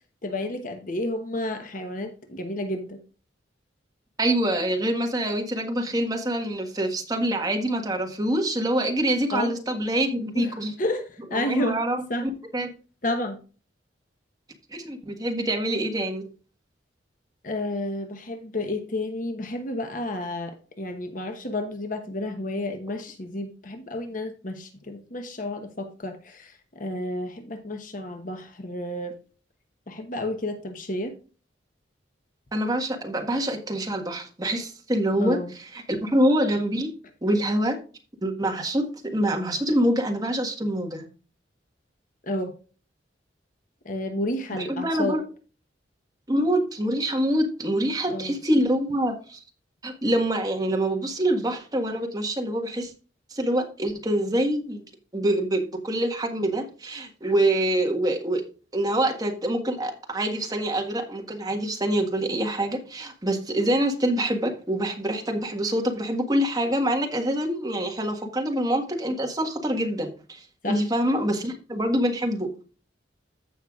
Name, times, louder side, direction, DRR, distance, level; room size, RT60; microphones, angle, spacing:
voice 1, 0.2-3.0 9.3-9.5 10.3-11.8 12.1-12.3 13.0-13.4 17.4-29.2 29.9-31.1 35.2-35.5 42.3-42.5 43.8-45.2 48.1-48.3 70.6-70.8, left 1 dB, 45° left, 1.1 m, -31 dB
voice 2, 4.2-10.7 11.3-12.0 12.5-12.7 14.7-16.2 32.5-35.4 35.7-36.9 37.2-37.8 38.2-41.0 44.6-45.2 46.3-49.4 49.8-52.9 53.3-54.8 55.1-58.4 58.7-72.5, right 1 dB, 20° right, 1.5 m, -25 dB
15.0 x 5.6 x 2.4 m
head